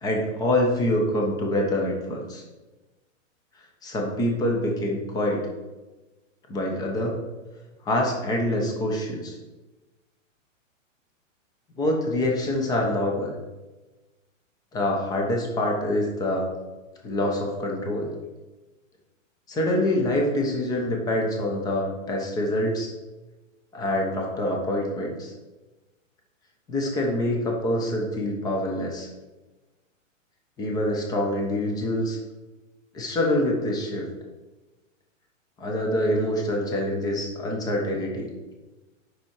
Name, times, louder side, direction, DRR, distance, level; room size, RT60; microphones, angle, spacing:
voice 1, 0.0-2.4 3.8-5.4 6.5-7.2 7.8-9.4 11.8-13.4 14.7-16.5 17.0-18.1 19.5-22.9 23.7-25.3 26.7-29.1 30.6-32.2 32.9-34.1 35.6-38.3, left 1 dB, 10° left, 0 dB, 1.1 m, -25 dB
8.3 x 6.0 x 4.8 m, 1.2 s
hypercardioid pair, 160°, 39 cm